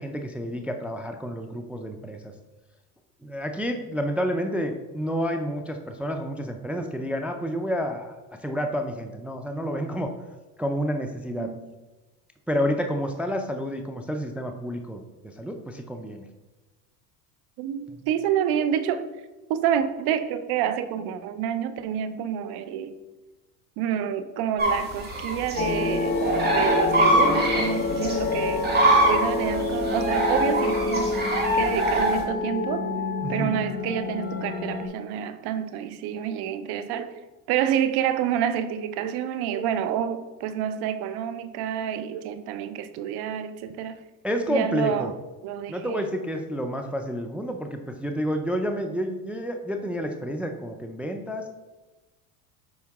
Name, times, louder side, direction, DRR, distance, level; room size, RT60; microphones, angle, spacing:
voice 1, 0.0-2.3 3.2-8.2 8.4-10.1 10.6-11.5 12.5-16.3 33.2-33.6 44.2-45.1 45.7-51.5, equal, 5° right, 5 dB, 0.4 m, -29 dB
voice 2, 17.6-19.0 19.5-22.9 23.8-26.1 26.5-28.7 29.1-31.1 31.5-32.8 33.3-37.1 37.5-44.0 44.5-45.1 45.4-46.0, right 9 dB, 55° right, 11 dB, 0.7 m, -28 dB
sound 1, 24.6-32.2, right 1 dB, 20° right, 2.1 m, -23 dB
sound 2, 25.6-34.9, left 3 dB, 20° left, 1.0 m, -27 dB
7.1 x 4.6 x 3.6 m, 1.1 s
hypercardioid pair, 85°, 47 cm